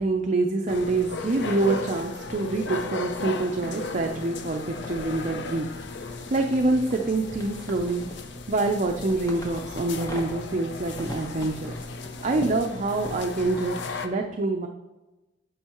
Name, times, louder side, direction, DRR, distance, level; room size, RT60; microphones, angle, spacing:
voice 1, 0.0-5.7 6.0-8.1 8.5-11.7 12.2-14.7, right 2 dB, 40° right, 3 dB, 0.5 m, -26 dB
sound 1, 0.7-14.1, left 3 dB, 65° left, 0.6 m, -36 dB
sound 2, 4.0-13.8, equal, 20° left, 1.1 m, -43 dB
10.0 x 7.1 x 3.0 m, 1.1 s
head